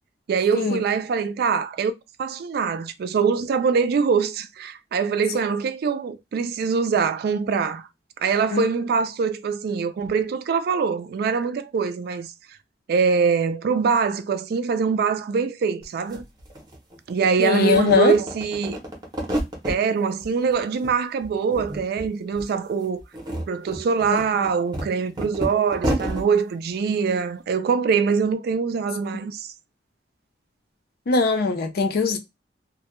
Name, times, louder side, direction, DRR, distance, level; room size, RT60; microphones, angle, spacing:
voice 1, 0.3-1.9 2.2-7.9 8.2-12.3 12.9-16.2 17.1-18.8 19.6-23.0 23.5-29.5, right 5 dB, 60° right, 0.3 m, -23 dB
sound 1, 15.8-15.9 16.1-17.3 17.6-19.8 20.2-20.9 21.2-22.1 22.3-22.5 23.0-26.3, right 1 dB, 25° right, 0.6 m, -30 dB
voice 2, 17.4-18.2 24.1-24.2 31.1-32.2, left 4 dB, 60° left, 0.5 m, -20 dB
2.1 x 2.1 x 2.9 m
head